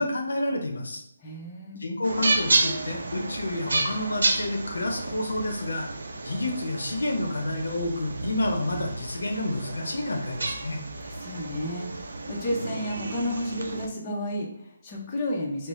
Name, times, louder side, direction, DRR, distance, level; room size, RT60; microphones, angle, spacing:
voice 1, 0.0-1.0 1.8-5.9 6.2-10.8, left 1 dB, 80° left, 3 dB, 0.7 m, -29 dB
voice 2, 1.2-1.8 11.0-15.7, left 1 dB, 20° left, -3 dB, 0.7 m, -32 dB
sound 1, 2.0-13.9, right 2 dB, 70° right, 0.5 m, -31 dB
4.0 x 2.0 x 3.0 m, 0.77 s
hypercardioid pair, 160°, 0 cm